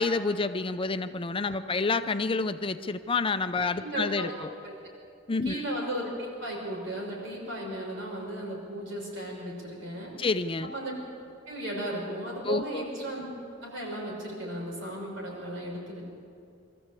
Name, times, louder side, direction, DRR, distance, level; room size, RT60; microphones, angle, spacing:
voice 1, 0.0-4.5 5.3-5.6 10.2-10.7 12.4-12.9, left 3 dB, 25° left, 10 dB, 0.5 m, -28 dB
voice 2, 3.6-4.3 4.6-4.7 5.4-10.1 10.6-10.9 11.5-13.3 13.6-16.1, right 1 dB, 80° right, -2 dB, 5.9 m, -35 dB
22.5 x 14.0 x 8.4 m, 2.4 s
head